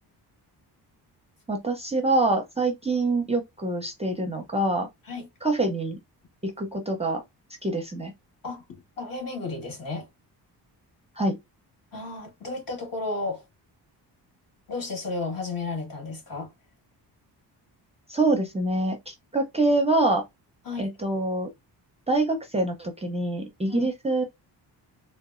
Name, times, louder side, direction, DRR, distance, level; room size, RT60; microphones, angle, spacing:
voice 1, 1.5-4.9 5.4-6.0 6.4-7.2 7.6-8.1 11.2-11.4 18.1-20.2 20.8-21.5 22.1-24.2, right 2 dB, 15° right, 0.5 m, -25 dB
voice 2, 8.4-10.1 11.9-13.4 14.7-16.5 20.6-20.9 23.7-23.9, left 3 dB, 55° left, 1.7 m, -33 dB
3.8 x 2.2 x 2.4 m
cardioid pair, 135°, 40 cm